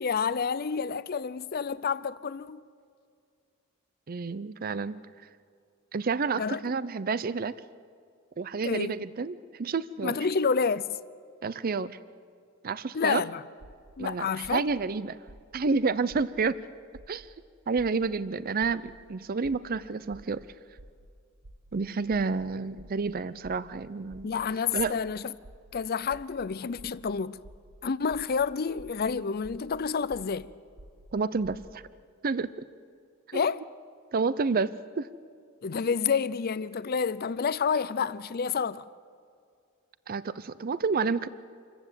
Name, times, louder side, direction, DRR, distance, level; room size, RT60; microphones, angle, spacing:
voice 1, 0.0-2.6 6.3-6.6 8.6-9.0 10.0-10.9 12.9-13.4 14.0-14.6 24.2-25.3 25.7-27.4 27.8-30.5 33.3-33.7 35.6-38.8, left 6 dB, 50° left, 0.5 m, -29 dB
voice 2, 4.1-5.0 5.9-7.5 8.4-10.2 11.4-12.0 12.6-13.2 14.0-15.2 15.5-16.6 17.1-17.3 17.7-20.5 21.7-24.3 24.7-25.0 31.1-31.8 32.2-32.5 33.3-33.4 34.1-35.1 40.1-41.3, right 4 dB, 45° right, 0.5 m, -29 dB
sound 1, 13.6-13.9 14.4-14.8 15.3-15.6 16.1-16.4 16.9-17.3 17.8-18.1 18.6-18.9 19.4-19.7 20.1-20.4 20.8-21.1 21.4-21.7 22.1-22.4 22.8-23.1 23.4-23.7 24.1-24.4 24.8-25.1 25.4-25.7 26.1-26.4 26.8-27.1 27.4-27.7 28.1-28.4 28.8-29.1 29.4-29.7 30.1-30.4 30.8-31.1 31.4-31.7, right 1 dB, 90° right, 1.3 m, -50 dB
27.5 x 15.0 x 8.2 m
head